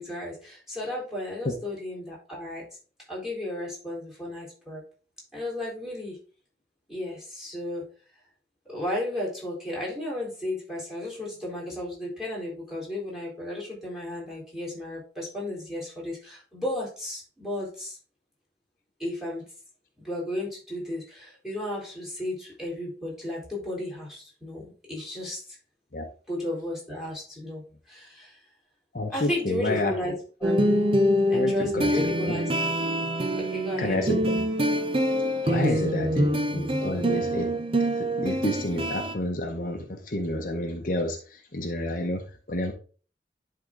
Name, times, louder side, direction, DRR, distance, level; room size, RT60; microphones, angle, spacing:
voice 1, 0.0-2.7 3.1-4.8 5.3-6.2 6.9-7.9 8.7-18.0 19.0-19.5 20.0-25.6 26.3-27.6 27.9-28.4 29.1-30.1 30.4-30.6 31.3-32.5 33.4-34.1 35.4-35.7, left 1 dB, ahead, -5 dB, 3.8 m, -34 dB
voice 2, 28.9-29.9 31.3-32.3 33.8-34.4 35.4-37.5 38.0-42.7, left 1 dB, 50° left, 3 dB, 0.9 m, -30 dB
sound 1, 30.4-39.1, equal, 30° right, 0.7 m, -25 dB
11.0 x 3.8 x 3.7 m, 0.39 s
head